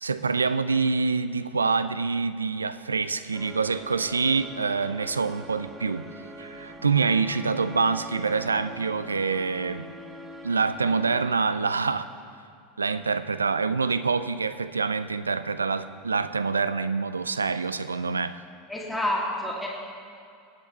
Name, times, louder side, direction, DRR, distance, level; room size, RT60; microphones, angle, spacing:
voice 1, 0.0-6.1 6.4-9.9 10.4-12.1 12.8-18.4, right 4 dB, 85° right, 13 dB, 0.4 m, -26 dB
sound 1, 3.3-11.3, right 1 dB, 25° right, 1.7 m, -42 dB
voice 2, 18.7-19.7, left 1 dB, 5° left, -4 dB, 2.0 m, -28 dB
19.0 x 7.9 x 4.1 m, 2.3 s
figure-of-eight pair, 85°, 0 cm